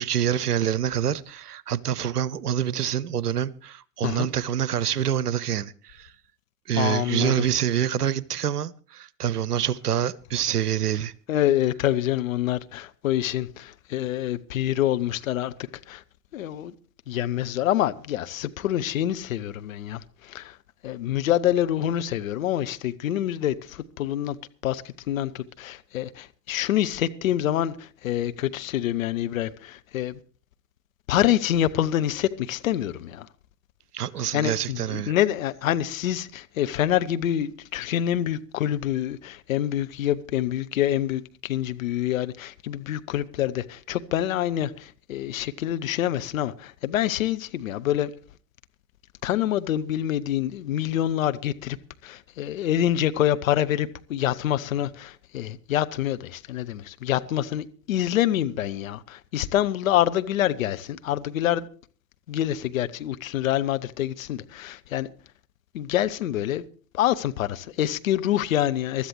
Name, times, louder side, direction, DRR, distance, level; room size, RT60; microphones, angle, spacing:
voice 1, 0.0-6.1 6.7-11.1 33.9-35.1, right 10 dB, 70° right, 0.8 m, -26 dB
voice 2, 6.8-7.5 11.3-15.5 15.9-16.0 16.3-16.7 17.1-20.6 20.8-24.4 24.6-30.2 31.1-33.3 34.3-48.1 49.2-51.8 52.0-61.7 62.3-65.1 65.7-66.6 66.9-69.1, left 12 dB, 55° left, 0.9 m, -26 dB
23.0 x 13.0 x 3.1 m
figure-of-eight pair, 90°, 48 cm